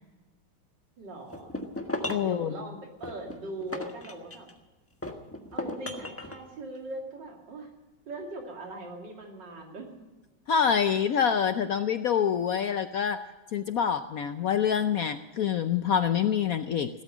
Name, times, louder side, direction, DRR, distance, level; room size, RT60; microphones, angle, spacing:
voice 1, 1.0-1.5 2.2-4.5 5.5-7.7 8.1-9.9, right 2 dB, 60° right, 1 dB, 3.3 m, -40 dB
sound 1, 1.3-2.4 3.0-4.6 5.0-6.4, left 1 dB, 10° left, 1.1 m, -36 dB
voice 2, 2.0-2.5 10.5-13.2 13.5-16.9, left 8 dB, 75° left, 10 dB, 0.8 m, -26 dB
16.5 x 13.0 x 6.2 m, 1.2 s
omnidirectional pair, 2.2 m